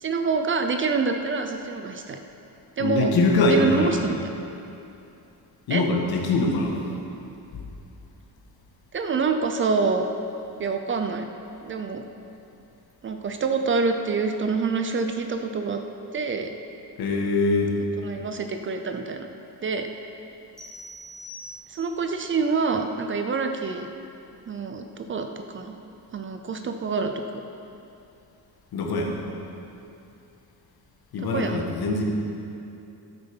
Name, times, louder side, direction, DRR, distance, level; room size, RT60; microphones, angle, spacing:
voice 1, 0.0-2.2 2.8-3.1 3.5-4.2 5.7-5.8 8.9-10.0 10.6-11.3 11.6-12.0 13.0-15.8 16.1-16.5 18.0-19.3 19.6-19.9 21.7-23.9 24.5-25.8 26.1-27.4 31.3-31.6, right 4 dB, 30° right, 6 dB, 0.5 m, -26 dB
voice 2, 2.8-4.0 5.7-6.8 7.5-7.6 17.0-17.7 28.7-29.1 31.1-32.0, left 3 dB, 70° left, 0 dB, 1.7 m, -23 dB
sound 1, 20.6-22.1, equal, ahead, 1.4 m, -43 dB
13.0 x 7.8 x 5.4 m, 2.7 s
cardioid pair, 175°, 38 cm